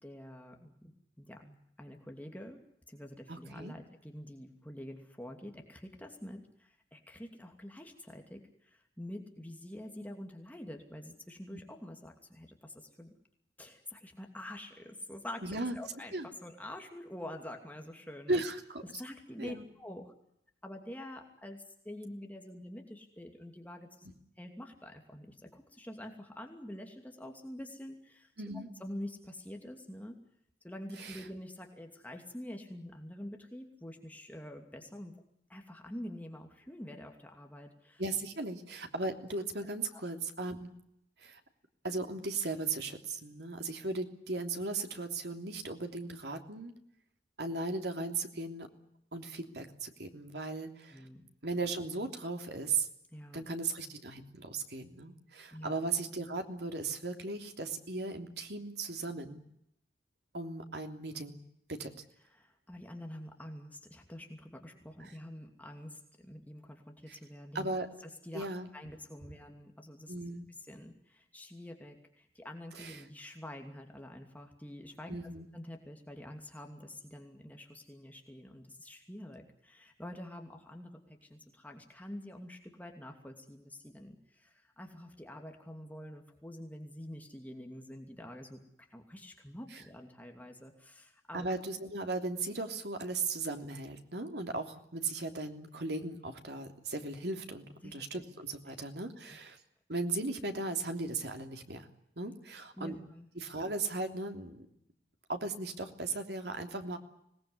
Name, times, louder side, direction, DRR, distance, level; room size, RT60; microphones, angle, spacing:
voice 1, 0.0-2.6 2.9-13.1 13.6-15.4 15.7-18.4 18.8-20.1 20.6-24.1 24.4-28.3 28.8-30.2 30.6-35.1 35.5-38.0 39.9-40.0 50.9-51.2 53.1-53.4 55.5-55.8 62.3-67.7 68.2-68.5 68.7-70.1 70.7-75.2 75.5-91.5 97.8-98.2 98.7-98.8 102.8-103.3, left 1 dB, 10° left, 3 dB, 2.7 m, -47 dB
voice 2, 3.3-3.7 11.5-11.6 15.4-15.8 16.1-16.3 18.3-18.8 19.4-19.6 28.4-28.7 31.0-31.2 38.0-40.7 41.2-41.4 41.8-46.7 47.4-48.7 49.1-51.0 51.4-52.9 53.3-59.4 60.3-61.4 61.7-61.9 65.0-65.1 67.1-67.2 67.5-67.9 68.3-68.7 70.1-70.5 72.7-73.0 75.1-75.5 89.7-89.8 91.3-99.6 99.9-101.9 102.2-103.0 103.3-104.7 105.3-107.0, right 3 dB, 65° right, 5 dB, 3.2 m, -37 dB
25.5 x 19.0 x 9.7 m, 0.77 s
head